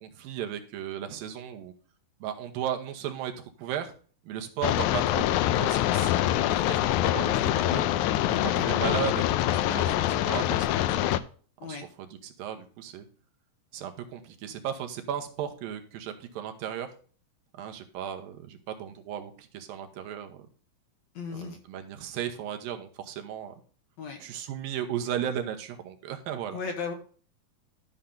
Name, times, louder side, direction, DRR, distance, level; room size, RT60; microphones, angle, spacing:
voice 1, 0.0-1.7 2.2-3.9 4.2-7.8 8.6-11.2 11.6-13.1 13.7-16.9 17.5-20.5 21.3-23.5 24.2-26.6, right 9 dB, 85° right, 6 dB, 2.8 m, -36 dB
sound 1, 4.6-11.2, left 13 dB, 85° left, 1.7 m, -25 dB
voice 2, 21.2-21.6 24.0-24.2 26.5-26.9, left 5 dB, 60° left, 2 dB, 2.1 m, -35 dB
12.0 x 5.8 x 3.8 m, 0.41 s
omnidirectional pair, 4.0 m